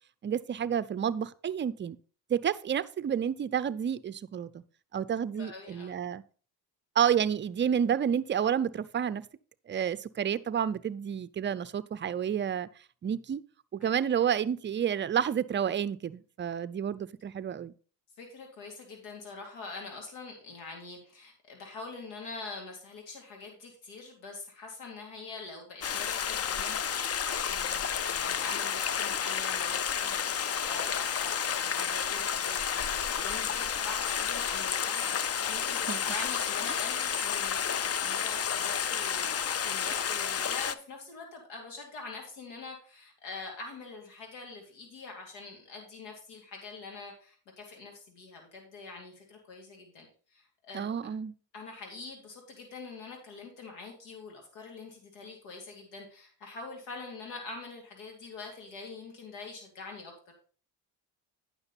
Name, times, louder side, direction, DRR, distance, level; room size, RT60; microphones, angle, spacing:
voice 1, 0.2-2.0 2.3-4.6 4.9-6.2 7.0-9.3 9.7-12.7 13.0-13.4 13.7-17.7 35.9-36.0 50.7-51.3, right 8 dB, 30° right, 0.5 m, -30 dB
voice 2, 5.3-6.0 13.8-13.9 18.2-51.1 51.5-60.1, left 4 dB, 90° left, 2.4 m, -45 dB
Stream, 25.8-40.7, left 8 dB, 35° left, 0.6 m, -31 dB
9.6 x 6.0 x 4.0 m
supercardioid pair, 80°, 42 cm